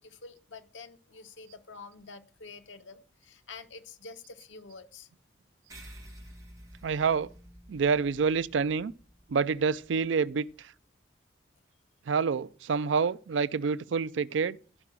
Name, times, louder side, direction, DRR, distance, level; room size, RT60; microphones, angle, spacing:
voice 1, 0.0-5.1, left 4 dB, 85° left, 1.1 m, -48 dB
sound 1, 5.7-10.5, equal, 20° right, 2.3 m, -51 dB
voice 2, 6.8-7.3 7.7-8.9 9.3-10.7 12.1-14.6, right 5 dB, 80° right, 0.4 m, -27 dB
12.0 x 5.8 x 6.1 m
head